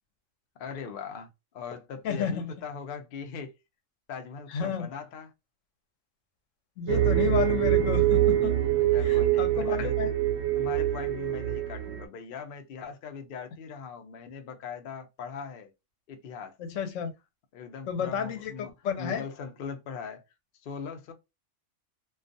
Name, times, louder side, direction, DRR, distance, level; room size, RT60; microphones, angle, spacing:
voice 1, 0.6-1.3 1.5-3.6 4.1-5.3 8.9-10.1 10.5-15.7 16.1-16.6 17.5-18.7 19.0-20.2 20.6-21.1, left 6 dB, 60° left, 0.7 m, -40 dB
voice 2, 2.0-2.5 4.5-4.9 6.8-8.6 9.0-10.1 16.6-17.1 17.9-19.2, left 7 dB, 90° left, 1.0 m, -31 dB
sound 1, 6.9-12.1, right 12 dB, 70° right, 0.8 m, -25 dB
2.3 x 2.3 x 2.5 m
omnidirectional pair, 1.3 m